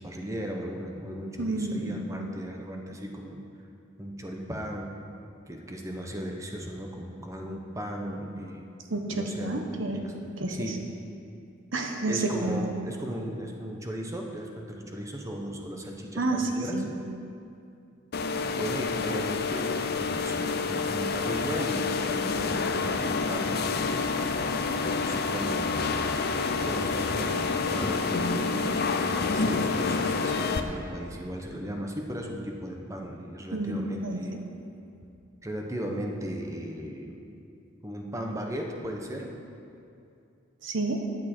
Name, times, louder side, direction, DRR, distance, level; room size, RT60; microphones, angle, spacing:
voice 1, 0.0-3.4 4.0-4.9 5.5-8.6 9.1-9.6 9.9-10.1 10.5-10.8 12.1-16.8 18.5-24.3 24.7-25.8 26.6-34.3 35.4-37.2 37.8-39.3, equal, 15° right, 1 dB, 1.0 m, -36 dB
voice 2, 1.4-2.0 8.9-10.0 10.4-10.8 11.7-12.6 16.2-16.9 33.5-34.4 40.6-41.0, right 2 dB, 65° right, 3 dB, 1.1 m, -30 dB
sound 1, 18.1-30.6, left 4 dB, 50° left, 0.6 m, -28 dB
13.0 x 9.0 x 4.5 m, 2.6 s
head